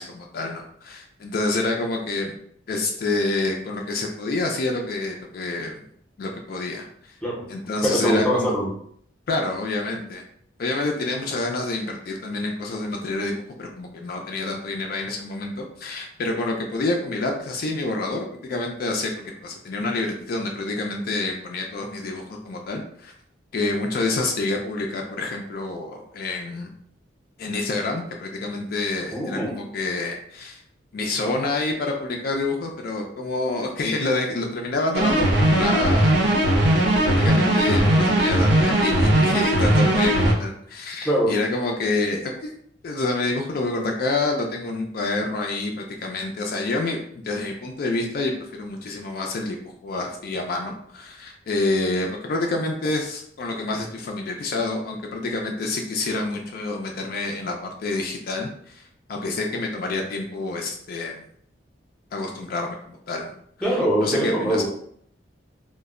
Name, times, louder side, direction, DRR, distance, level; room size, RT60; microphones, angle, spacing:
voice 1, 0.0-2.3 2.7-5.9 6.2-7.2 7.5-8.5 9.3-10.2 10.6-23.1 23.5-26.7 27.4-30.6 30.9-36.2 37.0-42.5 42.8-61.2 62.1-63.3 64.0-64.6, left 2 dB, 55° left, 1 dB, 0.3 m, -28 dB
voice 2, 7.8-8.7 29.1-29.6 41.0-41.4 63.6-64.6, equal, 5° left, -3 dB, 0.6 m, -22 dB
sound 1, 34.9-40.3, right 1 dB, 70° right, 0.7 m, -19 dB
2.1 x 2.1 x 3.5 m, 0.65 s
head